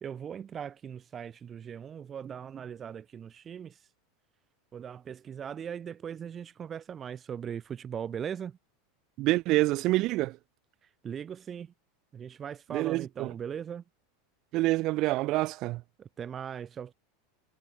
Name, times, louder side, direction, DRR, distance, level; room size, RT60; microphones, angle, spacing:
voice 1, 0.0-3.8 4.7-8.6 11.0-11.7 12.1-13.8 16.0-16.9, right 8 dB, 30° right, 1.6 m, -39 dB
voice 2, 9.2-10.4 12.7-13.3 14.5-15.8, right 19 dB, 50° right, 1.2 m, -27 dB
hypercardioid pair, 85°, 0 cm